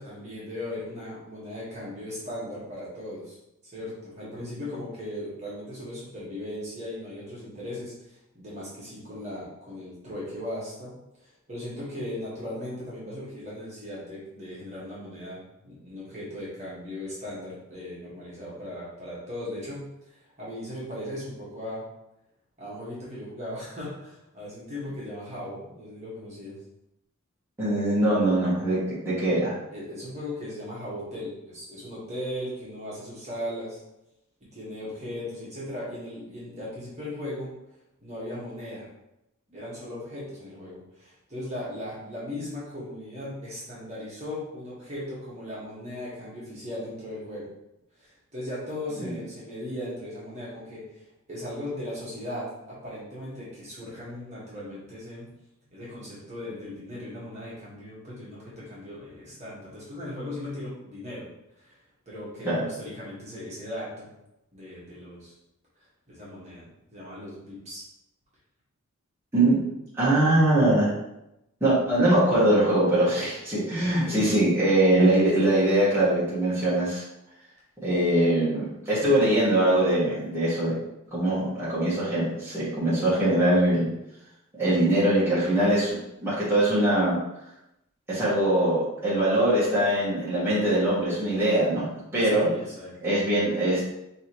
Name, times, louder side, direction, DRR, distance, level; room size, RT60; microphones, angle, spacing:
voice 1, 0.0-3.4 3.7-10.9 11.2-21.8 22.6-26.5 29.7-33.8 34.5-37.5 38.0-38.9 39.5-47.4 48.0-55.3 55.7-61.3 61.6-61.8 62.0-64.1 64.5-65.3 65.8-67.8 73.1-73.2 73.8-74.2 92.3-92.9, left 1 dB, 30° right, -8 dB, 1.5 m, -38 dB
voice 2, 27.6-29.5 49.0-49.1 62.4-62.6 69.3-69.6 70.0-70.9 71.6-77.0 77.8-80.8 81.1-83.9 84.6-87.2 88.1-91.8 92.1-92.5 93.0-93.8, right 1 dB, 10° right, -11 dB, 1.5 m, -22 dB
4.9 x 3.2 x 3.0 m, 0.88 s
head